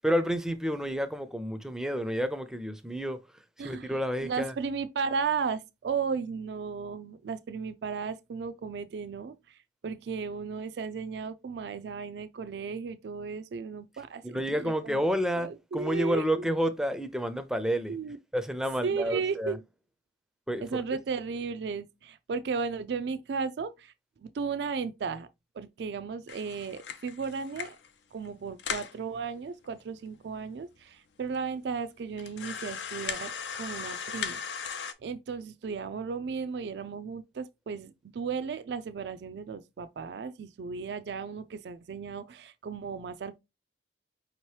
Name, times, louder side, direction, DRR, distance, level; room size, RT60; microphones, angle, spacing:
voice 1, 0.0-3.2 3.6-4.5 14.2-18.0 18.3-19.6 20.5-20.6, equal, 5° right, 0.4 m, -30 dB
voice 2, 3.6-9.3 9.8-15.0 15.4-16.5 17.9-18.2 18.8-19.6 20.6-23.9 24.2-25.3 25.6-27.8 28.1-34.4 35.0-43.4, right 5 dB, 70° right, 0.4 m, -35 dB
sound 1, 26.3-27.9 28.2-28.3 28.6-29.0 29.6-29.7 30.0-30.1 30.8-30.9 31.3-31.4 32.2-34.9, left 7 dB, 85° left, 0.5 m, -37 dB
5.2 x 2.9 x 3.1 m
head